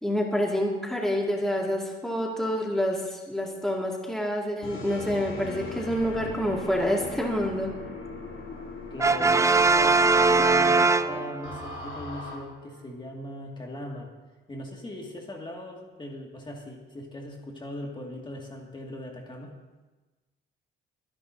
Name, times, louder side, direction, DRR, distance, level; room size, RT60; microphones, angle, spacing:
voice 1, 0.0-7.7, equal, ahead, -1 dB, 2.2 m, -27 dB
sound 1, 4.6-12.4, left 3 dB, 80° left, 3.2 m, -39 dB
voice 2, 8.9-14.1 14.5-19.5, left 1 dB, 25° left, -1 dB, 2.1 m, -39 dB
Brass instrument, 9.0-11.7, right 3 dB, 15° right, 0.5 m, -21 dB
22.5 x 10.5 x 2.8 m, 1.2 s
cardioid pair, 90°, 20 cm